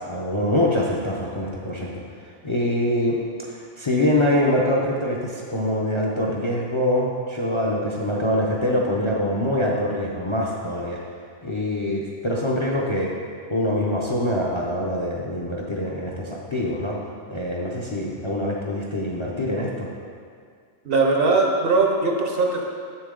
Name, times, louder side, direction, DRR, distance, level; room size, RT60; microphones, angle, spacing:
voice 1, 0.0-2.0 2.4-11.0 11.4-13.1 13.5-17.0 17.3-19.9, left 1 dB, 30° left, -2 dB, 0.6 m, -24 dB
voice 2, 20.8-22.6, right 3 dB, 55° right, 1 dB, 0.9 m, -20 dB
7.0 x 7.0 x 3.7 m, 2.2 s
omnidirectional pair, 1.3 m